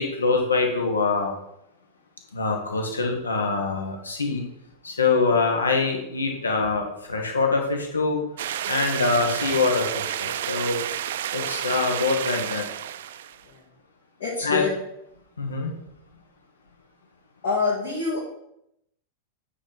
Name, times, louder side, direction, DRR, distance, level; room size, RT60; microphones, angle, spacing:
voice 1, 0.0-1.4 2.3-4.4 4.8-8.2 8.7-10.8 11.3-12.6 14.4-14.6 15.4-15.7, left 4 dB, 75° left, 2 dB, 1.4 m, -24 dB
sound 1, 8.4-13.4, right 11 dB, 60° right, 0.4 m, -30 dB
voice 2, 8.7-9.2 13.4-13.6 14.2-14.8 17.4-18.2, left 4 dB, 60° left, -8 dB, 2.0 m, -27 dB
8.7 x 3.2 x 5.7 m, 0.79 s
figure-of-eight pair, 90°, 0 cm